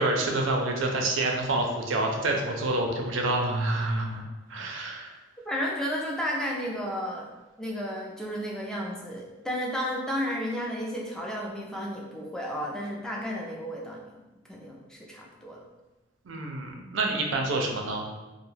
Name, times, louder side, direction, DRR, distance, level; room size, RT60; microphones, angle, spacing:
voice 1, 0.0-4.2 4.5-5.1 16.2-18.0, right 2 dB, 80° right, 1 dB, 0.5 m, -27 dB
voice 2, 5.5-7.3 7.6-14.1 14.5-15.6, equal, 5° left, -3 dB, 0.3 m, -32 dB
2.3 x 2.2 x 3.1 m, 1.1 s
head